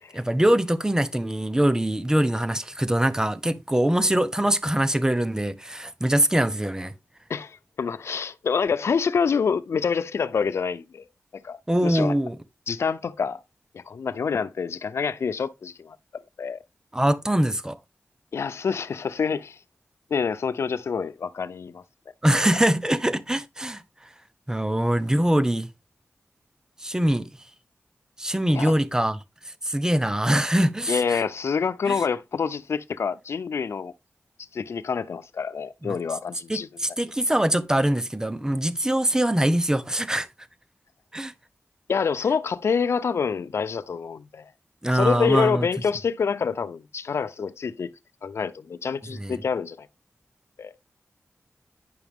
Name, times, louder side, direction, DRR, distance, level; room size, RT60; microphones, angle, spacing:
voice 1, 0.1-6.9 11.7-12.4 16.9-17.8 22.2-23.8 24.5-25.7 26.8-27.3 28.2-29.2 29.4-31.2 31.9-32.0 35.8-36.0 36.5-40.3 41.1-41.3 44.8-45.7 49.1-49.4, right 1 dB, 15° right, 1.1 m, -23 dB
voice 2, 7.3-11.0 11.4-12.1 12.7-13.4 13.7-16.6 18.3-19.6 20.1-21.8 28.5-28.7 30.9-33.9 34.5-36.7 41.9-44.5 44.9-47.9 48.2-49.9 50.6-50.7, left 6 dB, 85° left, 0.6 m, -27 dB
10.5 x 5.7 x 3.6 m
cardioid pair, 55°, 4 cm